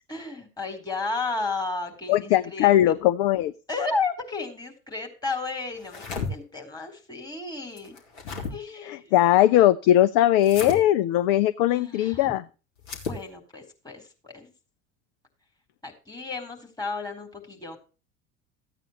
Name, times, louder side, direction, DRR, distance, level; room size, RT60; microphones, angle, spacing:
voice 1, 0.1-2.7 3.7-8.0 8.5-9.1 11.7-12.4 13.0-14.5 15.8-17.8, left 3 dB, 10° left, 2 dB, 3.9 m, -33 dB
voice 2, 2.1-3.5 8.9-12.4, left 13 dB, 40° left, 14 dB, 0.6 m, -20 dB
sound 1, 5.7-6.3 7.8-8.5 10.4-10.8 12.8-13.2, left 4 dB, 55° left, 3.2 m, -33 dB
15.0 x 9.0 x 3.1 m, 0.34 s
figure-of-eight pair, 75°, 40 cm